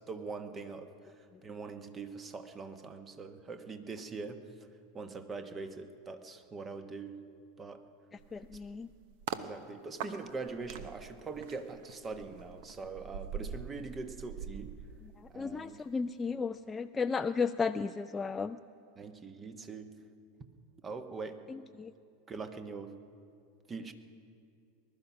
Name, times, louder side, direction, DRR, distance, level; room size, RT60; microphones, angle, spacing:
voice 1, 0.0-4.7 4.9-7.2 7.6-7.8 8.5-8.6 9.3-14.8 15.3-15.9 19.0-20.0 20.8-21.4 22.3-23.0 23.7-23.9, right 4 dB, 25° right, 8 dB, 1.2 m, -43 dB
sound 1, 8.2-9.5 10.0-15.6 15.9-16.2, right 8 dB, 60° right, 0.8 m, -44 dB
voice 2, 8.3-8.9 15.2-18.6 21.5-21.9, left 5 dB, 20° left, 8 dB, 0.3 m, -34 dB
20.0 x 12.0 x 6.0 m, 2.4 s
hypercardioid pair, 90°, 0 cm